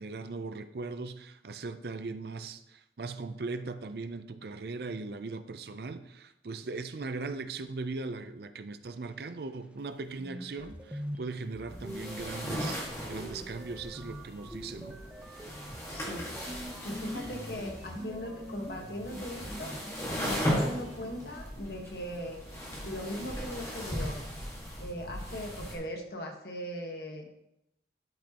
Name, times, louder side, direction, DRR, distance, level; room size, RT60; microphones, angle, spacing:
voice 1, 0.0-15.0, right 3 dB, 65° right, 0.5 m, -39 dB
sound 1, 9.8-9.9 10.2-21.4, equal, 5° right, 0.5 m, -44 dB
sound 2, 11.7-25.7, equal, 15° left, 1.7 m, -38 dB
voice 2, 15.9-16.3 16.6-19.8 20.2-22.4 22.8-24.2 24.8-27.3, equal, 60° left, 1.4 m, -39 dB
12.0 x 5.2 x 2.9 m
head